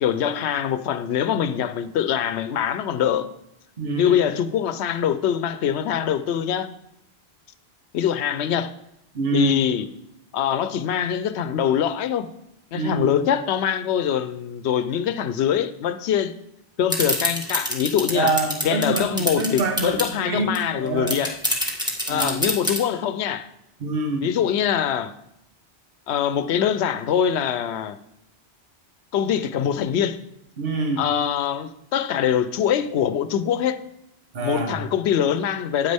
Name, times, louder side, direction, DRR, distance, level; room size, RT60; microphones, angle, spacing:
voice 1, 0.0-3.3 4.0-6.7 7.9-8.7 9.3-9.9 10.3-12.3 12.7-16.3 16.8-18.3 18.6-21.4 22.1-23.5 24.2-25.1 26.1-28.0 29.1-30.2 31.0-33.8 34.4-35.9, left 9 dB, 85° left, 0.9 m, -23 dB
voice 2, 3.8-4.2 9.1-9.5 12.7-13.2 18.1-21.2 22.1-22.4 23.8-24.3 30.6-31.1 34.3-34.8, right 3 dB, 60° right, 1.3 m, -26 dB
sound 1, 16.9-20.1 20.5-20.6 20.9-22.8, equal, 5° right, 1.5 m, -25 dB
9.4 x 9.0 x 3.4 m
omnidirectional pair, 1.1 m